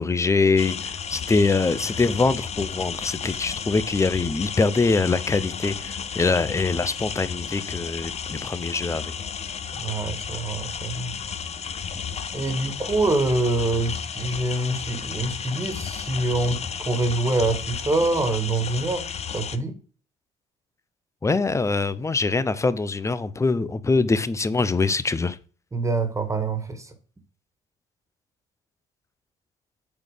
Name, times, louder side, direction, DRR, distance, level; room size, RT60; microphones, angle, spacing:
voice 1, 0.0-9.1 21.2-25.4, left 3 dB, 15° left, 0.7 m, -23 dB
sound 1, 0.6-19.6, left 7 dB, 40° left, 0.9 m, -33 dB
voice 2, 9.7-11.1 12.3-19.1 19.3-19.8 25.7-26.9, right 2 dB, 15° right, 1.9 m, -25 dB
8.7 x 4.2 x 6.6 m
cardioid pair, 110°, 17 cm